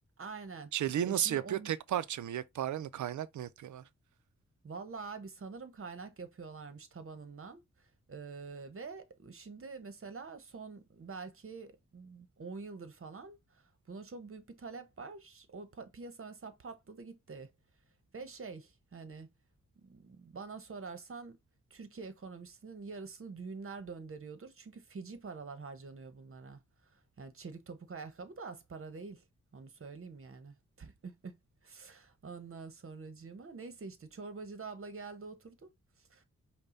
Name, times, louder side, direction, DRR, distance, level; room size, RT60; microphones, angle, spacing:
voice 1, 0.2-0.7 1.0-1.7 4.6-7.6 8.1-17.5 18.1-19.3 19.8-21.4 21.7-26.6 26.9-29.2 29.5-31.3 31.6-35.7 36.1-36.2, right 4 dB, 50° right, 1.0 m, -46 dB
voice 2, 0.7-3.8, right 11 dB, 80° right, 0.5 m, -34 dB
5.4 x 2.3 x 3.9 m
cardioid pair, 65°, 29 cm